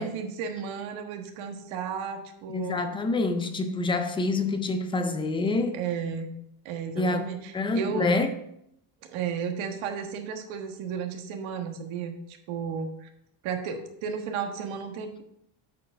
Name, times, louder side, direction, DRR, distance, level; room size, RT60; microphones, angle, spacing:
voice 1, 0.0-2.8 5.7-6.3 6.6-8.1 9.1-13.1 13.4-15.2, right 6 dB, 75° right, 1.5 m, -33 dB
voice 2, 2.5-5.8 7.0-7.3 7.5-8.3, left 2 dB, 10° left, 0.3 m, -27 dB
8.2 x 4.7 x 5.5 m
cardioid pair, 160°, 48 cm